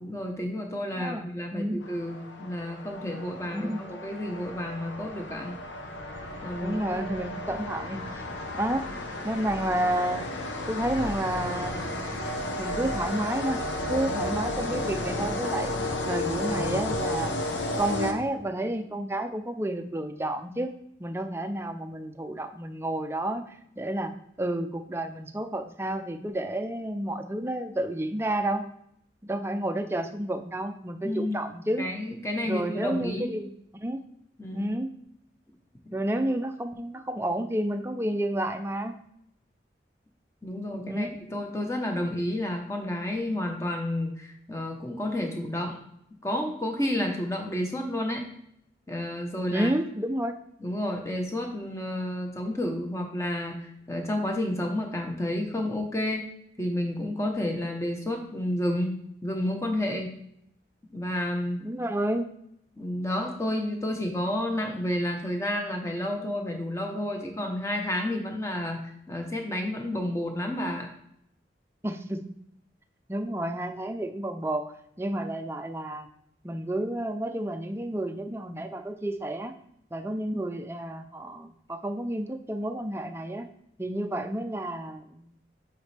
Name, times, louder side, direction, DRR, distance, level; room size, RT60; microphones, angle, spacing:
voice 1, 0.0-5.6 6.4-6.8 7.2-7.4 31.0-31.4 31.8-33.3 34.4-34.7 40.4-45.8 46.2-48.2 48.9-49.7 50.6-56.2 56.6-60.1 60.9-61.6 62.8-68.8 69.1-70.9, left 1 dB, 15° left, 2 dB, 0.9 m, -30 dB
voice 2, 1.0-1.9 3.5-3.9 6.6-8.0 8.5-8.9 9.2-10.2 10.7-12.0 12.6-13.6 13.9-15.7 16.1-17.3 17.8-20.7 21.0-24.1 24.4-28.6 29.2-31.9 32.4-34.0 34.5-34.9 35.9-39.0 40.7-41.1 49.5-50.4 61.6-62.3 71.8-72.2 73.1-76.1 76.4-79.5 79.9-83.5 83.8-85.0, right 1 dB, 15° right, 7 dB, 0.4 m, -30 dB
sound 1, 1.8-18.6, left 1 dB, 85° left, 0.9 m, -33 dB
8.1 x 4.0 x 3.3 m, 0.73 s
head